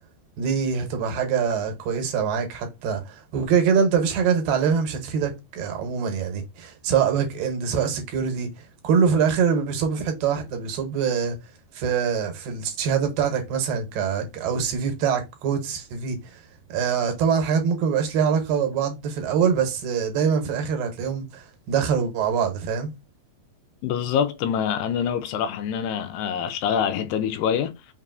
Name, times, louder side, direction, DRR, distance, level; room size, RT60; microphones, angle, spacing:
voice 1, 0.4-8.5 8.8-11.4 11.7-16.4 16.7-22.9, right 6 dB, 75° right, 2.6 m, -24 dB
voice 2, 23.8-27.7, left 8 dB, 80° left, 2.2 m, -25 dB
5.9 x 2.6 x 2.5 m
omnidirectional pair, 4.1 m